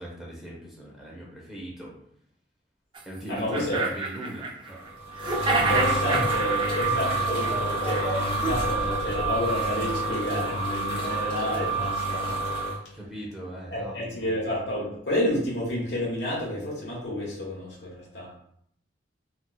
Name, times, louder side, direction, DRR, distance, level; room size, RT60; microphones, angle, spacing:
voice 1, 0.0-1.9 3.1-4.8 12.9-14.3, right 1 dB, ahead, -4 dB, 0.8 m, -39 dB
sound 1, 3.0-3.1 3.4-4.9 5.2-8.6, right 3 dB, 25° right, 0.3 m, -30 dB
voice 2, 3.3-3.8 5.5-12.5 13.7-18.3, left 1 dB, 65° left, -5 dB, 1.3 m, -30 dB
sound 2, 4.8-12.8, right 2 dB, 30° left, 0.8 m, -28 dB
4.4 x 2.3 x 2.3 m, 0.69 s
head